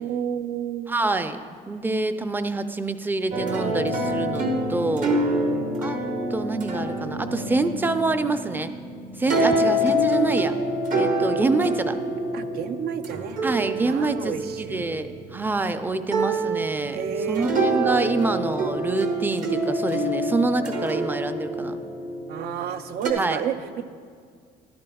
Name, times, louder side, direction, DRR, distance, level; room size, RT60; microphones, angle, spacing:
voice 1, 0.0-1.1 5.5-5.9 9.2-9.6 12.3-13.4 13.8-14.9 16.9-17.5 22.3-23.8, right 8 dB, 70° right, 11 dB, 0.5 m, -31 dB
voice 2, 0.9-1.4 1.7-5.2 5.8-6.0 6.3-8.7 9.2-10.5 10.9-12.0 13.4-21.8 23.2-23.4, right 3 dB, 10° right, 10 dB, 0.4 m, -26 dB
sound 1, 3.3-15.6 16.1-23.1, right 1 dB, 50° right, 1.2 m, -26 dB
13.0 x 11.0 x 2.3 m, 2.1 s
cardioid pair, 110°, 17 cm